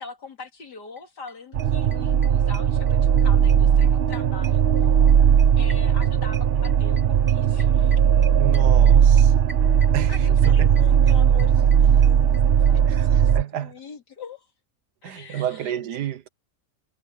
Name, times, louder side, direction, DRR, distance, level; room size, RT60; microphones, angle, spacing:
voice 1, 0.0-4.6 5.6-8.0 10.1-14.5 15.0-15.8, left 4 dB, 80° left, 3.4 m, -42 dB
sound 1, 1.0-1.1 1.3-1.4 1.6-3.2 3.5-12.7 13.0-13.1 13.3-13.4 13.6-13.7, right 1 dB, 5° right, 1.5 m, -43 dB
sound 2, 1.5-13.4, right 8 dB, 55° right, 0.7 m, -18 dB
voice 2, 8.4-9.3 9.9-10.7 12.9-13.7 15.0-16.3, right 11 dB, 75° right, 1.5 m, -30 dB
omnidirectional pair, 1.8 m